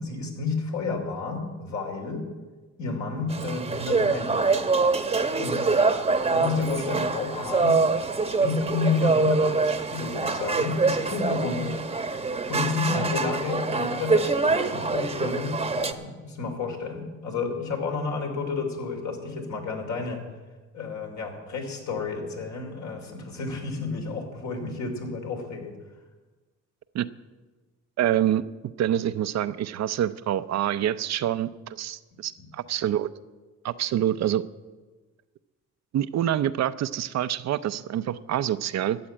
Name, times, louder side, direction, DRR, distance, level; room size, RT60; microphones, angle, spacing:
voice 1, 0.0-2.3 2.8-4.6 5.4-5.7 6.3-7.8 8.4-11.8 12.5-20.2 20.7-25.7, left 4 dB, 70° left, 2 dB, 3.1 m, -30 dB
sound 1, 3.3-15.9, right 4 dB, 20° right, 1.0 m, -25 dB
voice 2, 28.0-28.4 28.8-33.1 33.6-34.4 35.9-39.0, right 11 dB, 60° right, 14 dB, 0.6 m, -26 dB
13.0 x 7.7 x 8.8 m, 1.3 s
cardioid pair, 90°, 30 cm